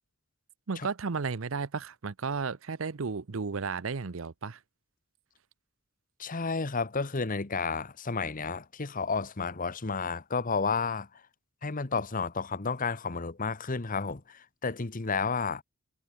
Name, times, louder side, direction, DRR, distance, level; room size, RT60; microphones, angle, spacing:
voice 1, 0.7-4.6, right 5 dB, 70° right, 0.7 m, -33 dB
voice 2, 6.2-11.2 11.6-15.6, left 4 dB, 40° left, 1.1 m, -31 dB
head